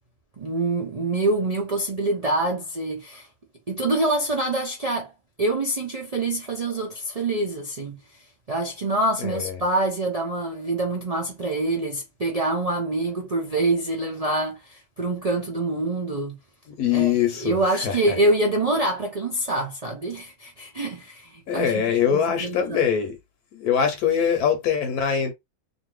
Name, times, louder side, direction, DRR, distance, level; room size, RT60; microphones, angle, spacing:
voice 1, 0.4-3.3 3.7-5.1 5.4-8.0 8.5-16.4 16.9-17.1 17.4-21.7 22.1-22.8, right 2 dB, 70° right, 0.3 m, -25 dB
voice 2, 9.2-9.6 16.7-18.2 21.5-23.2 23.5-25.3, left 8 dB, 75° left, 1.1 m, -23 dB
2.6 x 2.6 x 3.0 m
omnidirectional pair, 1.7 m